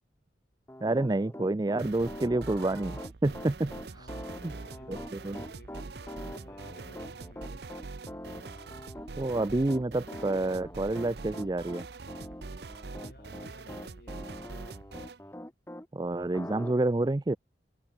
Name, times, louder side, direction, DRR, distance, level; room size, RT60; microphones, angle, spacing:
Piano, 0.7-15.9 16.3-16.7, left 1 dB, 15° left, 1.3 m, -44 dB
voice 1, 0.8-4.1 4.4-4.5 4.9-5.4 9.1-11.9 15.9-17.4, right 2 dB, 20° right, 0.4 m, -29 dB
sound 1, 1.8-15.2, right 3 dB, 60° right, 0.7 m, -44 dB
voice 2, 3.9-7.7 12.9-14.6, left 1 dB, 55° left, 4.0 m, -55 dB
head